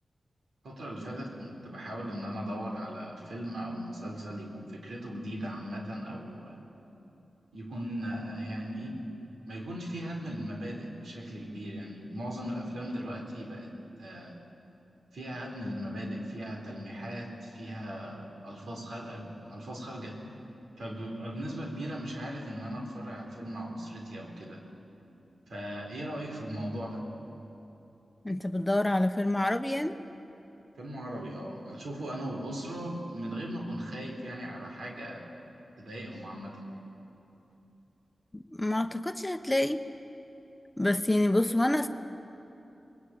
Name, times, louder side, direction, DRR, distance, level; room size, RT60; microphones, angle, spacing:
voice 1, 0.6-6.6 7.5-9.0 9.5-13.7 14.0-14.3 15.1-20.2 20.8-24.6 25.5-27.0 30.8-35.4 35.8-36.7, equal, 90° right, 0 dB, 4.1 m, -38 dB
voice 2, 28.2-30.0 38.3-39.8 40.8-41.9, left 1 dB, 15° left, 8 dB, 1.1 m, -27 dB
24.5 x 20.0 x 8.9 m, 3.0 s
cardioid pair, 50°, 0 cm